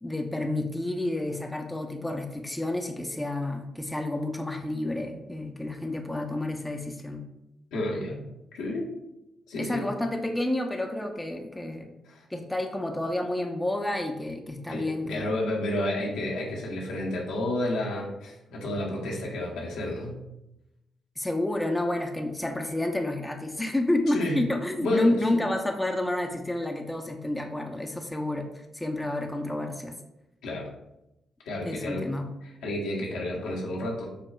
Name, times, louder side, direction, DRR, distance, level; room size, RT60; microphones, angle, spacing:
voice 1, 0.0-7.2 9.6-11.9 12.3-15.3 21.2-29.9 31.6-32.3, left 1 dB, 15° left, 3 dB, 0.6 m, -30 dB
voice 2, 7.7-8.2 8.5-8.9 9.5-9.9 12.1-12.2 14.7-20.2 24.1-24.4 24.8-25.4 30.4-30.7 31.4-32.1 32.6-34.1, left 1 dB, 75° left, -3 dB, 0.9 m, -30 dB
6.8 x 2.3 x 2.3 m, 0.90 s
hypercardioid pair, 40°, 0 cm